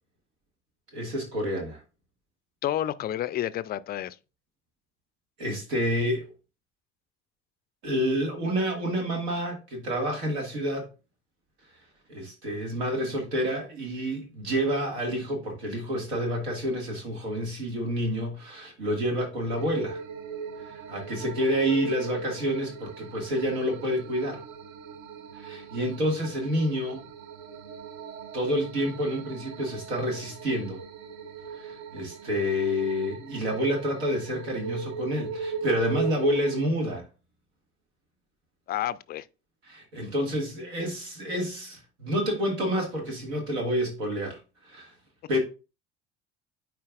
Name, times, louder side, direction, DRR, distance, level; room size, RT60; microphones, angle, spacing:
voice 1, 0.9-1.8 5.4-6.3 7.8-10.9 12.1-20.0 20.7-24.4 25.4-27.1 28.3-30.8 31.6-37.0 39.7-44.4 44.7-44.9 45.3-45.4, equal, 75° right, 2.0 m, -28 dB
voice 2, 2.6-4.2 38.7-39.3, left 12 dB, 30° left, 0.4 m, -30 dB
sound 1, 19.6-36.7, right 6 dB, 55° right, 0.9 m, -39 dB
9.4 x 4.5 x 2.4 m
figure-of-eight pair, 55°, 33 cm